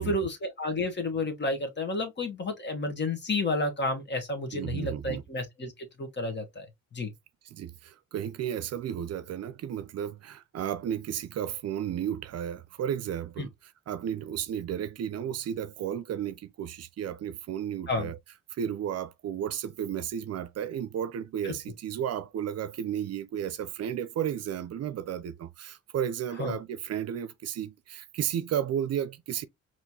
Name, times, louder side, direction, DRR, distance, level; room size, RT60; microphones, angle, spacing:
voice 1, 0.0-5.7 6.0-6.6 6.9-7.1 13.4-13.5 17.9-18.1 21.4-21.5 26.4-26.6, left 2 dB, 35° left, 1.3 m, -31 dB
voice 2, 4.5-5.2 7.5-18.2 18.5-29.5, right 9 dB, 55° right, 0.5 m, -33 dB
4.4 x 3.0 x 2.8 m
cardioid pair, 90°, 30 cm